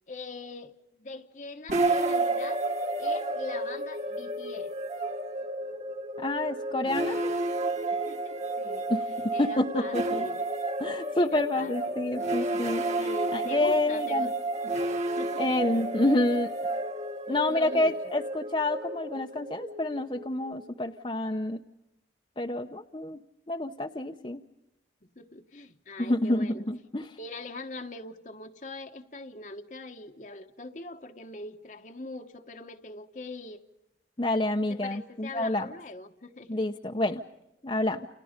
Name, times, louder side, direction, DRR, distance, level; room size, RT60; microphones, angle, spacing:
voice 1, 0.1-2.6 3.0-4.7 7.9-8.9 9.3-10.4 11.1-12.0 12.4-12.6 13.0-14.4 15.2-15.5 17.5-17.9 25.2-26.6 27.2-33.6 34.8-36.6, left 2 dB, 45° left, 5 dB, 1.2 m, -42 dB
sound 1, 1.7-20.8, right 2 dB, 40° right, 2.0 m, -31 dB
voice 2, 6.2-7.3 8.9-10.2 10.8-13.0 13.3-14.3 15.4-16.5 17.3-21.6 22.4-23.2 23.5-24.4 26.0-27.1 34.2-35.7 36.5-37.2 37.6-38.1, left 1 dB, 30° left, 3 dB, 0.8 m, -28 dB
29.5 x 29.0 x 5.2 m, 0.93 s
head